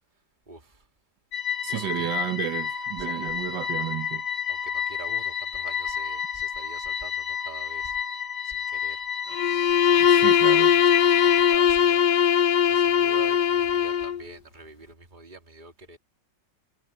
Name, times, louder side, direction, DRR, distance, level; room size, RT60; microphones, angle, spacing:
voice 1, 0.5-0.9 1.7-2.1 3.0-3.3 4.5-8.0 8.4-9.0 9.6-10.4 10.8-12.0 12.6-16.0, right 3 dB, 25° right, 2.8 m, -46 dB
sound 1, 1.3-11.6, left 8 dB, 50° left, 1.8 m, -31 dB
voice 2, 1.6-4.2 10.1-10.8, right 11 dB, 75° right, 1.6 m, -32 dB
Bowed string instrument, 9.3-14.2, left 9 dB, 70° left, 1.3 m, -20 dB
omnidirectional pair, 1.9 m